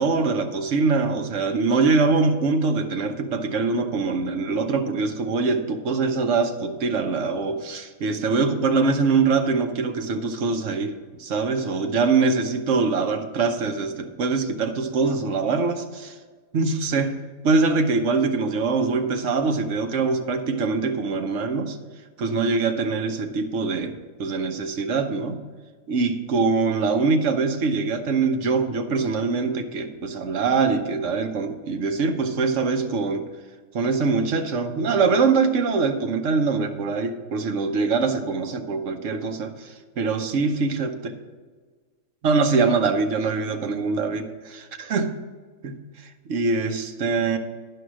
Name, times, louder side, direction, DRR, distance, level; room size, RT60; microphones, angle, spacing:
voice 1, 0.0-16.2 16.5-17.1 17.4-21.8 22.2-25.4 25.9-33.3 33.7-40.9 42.2-45.1 45.6-47.4, right 4 dB, 65° right, 6 dB, 1.1 m, -23 dB
11.5 x 4.9 x 6.2 m, 1.5 s
omnidirectional pair, 1.4 m